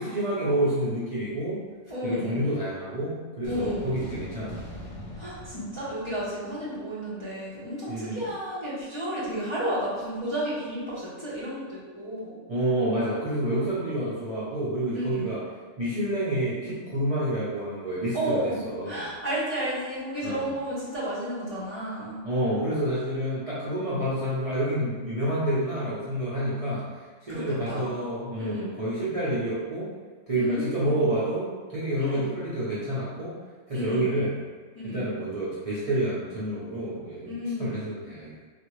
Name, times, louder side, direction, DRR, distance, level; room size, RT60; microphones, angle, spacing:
voice 1, 0.0-1.6 2.0-4.6 7.9-8.3 12.5-15.4 15.8-18.4 18.6-19.0 20.2-20.5 22.2-29.9 30.3-33.4 33.7-34.3 34.8-37.3 37.6-38.4, right 1 dB, 35° right, -11 dB, 0.6 m, -28 dB
voice 2, 1.9-2.5 3.4-4.0 5.1-12.4 13.5-13.7 14.9-15.3 18.1-18.6 18.8-22.2 27.3-27.9 28.3-28.7 30.3-31.0 32.0-32.3 33.7-34.2 34.7-35.0 37.2-37.7, equal, 25° left, -11 dB, 0.8 m, -32 dB
sound 1, 3.4-6.9, left 1 dB, 75° left, 1.0 m, -41 dB
3.4 x 2.4 x 3.1 m, 1.5 s
omnidirectional pair, 1.3 m